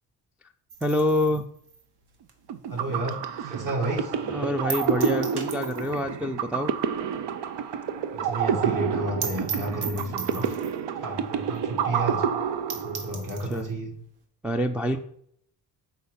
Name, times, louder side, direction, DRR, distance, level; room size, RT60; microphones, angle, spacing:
sound 1, 0.7-3.3 3.7-3.8 4.1-4.2 4.7-6.1 6.4-6.5 6.8-6.9 7.3-7.4 7.6-7.7 8.0-8.1 8.4-8.5 8.8-8.9 9.2-10.9 11.5-11.6 12.0-12.1 12.4-12.5 12.7-13.7, right 6 dB, 65° right, 1.3 m, -37 dB
voice 1, 0.8-1.5 4.3-6.7 13.5-13.7 14.4-15.0, left 1 dB, 5° right, 2 dB, 0.3 m, -26 dB
sound 2, 2.5-13.3, right 7 dB, 80° right, 0.7 m, -29 dB
voice 2, 2.7-4.1 8.1-10.6 10.9-12.2 12.7-13.9, right 2 dB, 45° right, 0 dB, 2.2 m, -31 dB
6.7 x 4.4 x 5.5 m, 0.69 s
cardioid pair, 100°, 42 cm